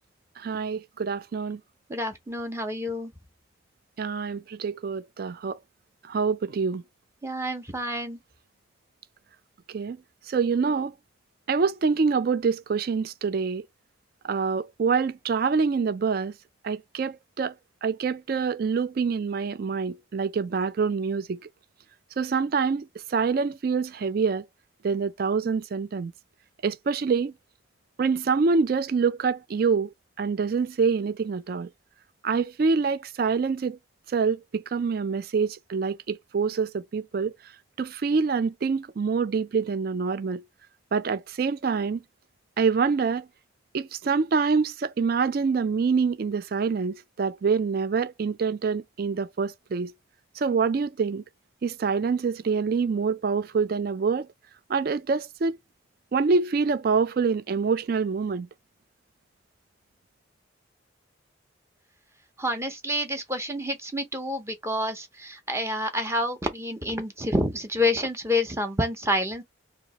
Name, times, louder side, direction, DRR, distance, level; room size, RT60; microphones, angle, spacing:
voice 1, 0.4-1.6 4.0-5.6 6.1-6.8 9.7-10.0 10.3-10.9 11.5-13.6 14.2-16.3 16.6-17.5 17.8-21.4 22.2-24.4 24.8-26.1 26.6-27.3 28.0-31.7 32.2-33.8 34.1-37.3 37.8-40.4 40.9-42.0 42.6-43.2 43.7-49.9 50.4-51.2 51.6-54.3 54.7-55.6 56.1-58.5, right 5 dB, 50° right, 0.3 m, -26 dB
voice 2, 1.9-3.1 7.2-8.2 62.4-69.4, left 1 dB, 15° right, 0.7 m, -28 dB
2.9 x 2.8 x 4.0 m
head